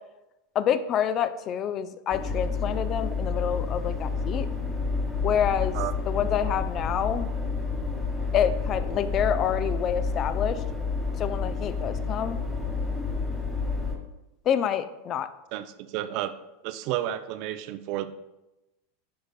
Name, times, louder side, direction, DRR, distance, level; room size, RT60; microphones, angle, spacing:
voice 1, 0.5-4.5 5.2-5.8 6.1-7.3 8.3-10.6 11.2-12.4 14.5-15.3, left 9 dB, 40° left, 12 dB, 0.4 m, -27 dB
sound 1, 2.1-14.0, left 4 dB, 5° left, 1.6 m, -29 dB
voice 2, 15.5-16.3 16.6-18.1, right 13 dB, 55° right, 12 dB, 0.4 m, -31 dB
9.3 x 5.1 x 2.2 m, 0.97 s
hypercardioid pair, 105°, 0 cm